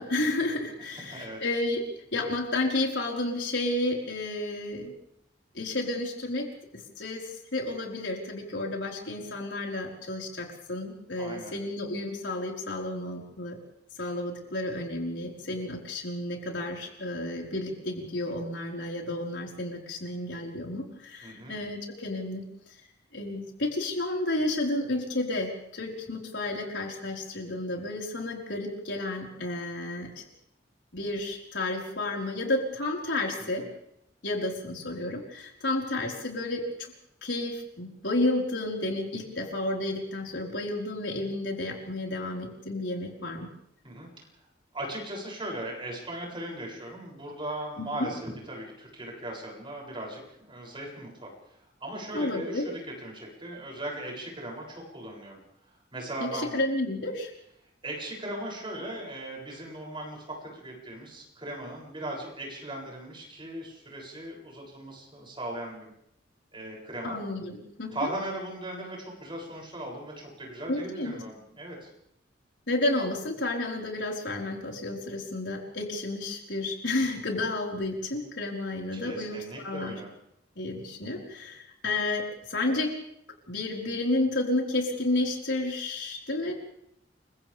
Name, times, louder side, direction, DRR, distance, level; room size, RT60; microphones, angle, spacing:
voice 1, 0.0-4.9 5.5-6.5 6.7-7.2 7.5-13.6 14.0-22.5 23.1-30.2 30.9-33.7 34.2-36.9 37.2-43.5 47.8-48.1 52.1-52.6 56.2-57.3 67.0-68.1 70.7-71.1 72.7-80.0 80.6-83.0 83.5-86.5, left 2 dB, 80° left, -1 dB, 5.0 m, -31 dB
voice 2, 1.0-1.4 11.1-11.6 21.2-21.6 27.7-27.9 33.4-33.7 43.8-44.1 44.7-55.4 55.9-56.6 57.8-65.9 66.5-67.2 67.9-71.9 78.9-80.1, right 1 dB, 30° right, -2 dB, 7.5 m, -38 dB
29.5 x 24.5 x 3.6 m, 0.74 s
head